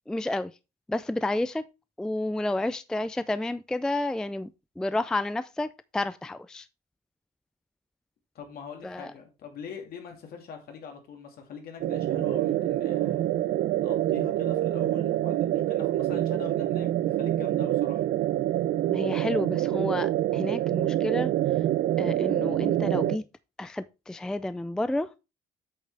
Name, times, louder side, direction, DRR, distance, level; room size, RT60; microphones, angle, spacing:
voice 1, 0.1-0.5 0.9-1.7 2.0-4.5 4.8-6.7 8.8-9.1 18.9-21.3 22.0-23.2 23.6-25.1, left 1 dB, 5° left, 0.3 m, -30 dB
voice 2, 8.3-13.3 13.8-16.9 17.2-18.0, left 6 dB, 65° left, 2.7 m, -43 dB
sound 1, 11.8-23.2, right 13 dB, 65° right, 0.6 m, -26 dB
8.5 x 6.5 x 3.4 m
cardioid pair, 110°, 17 cm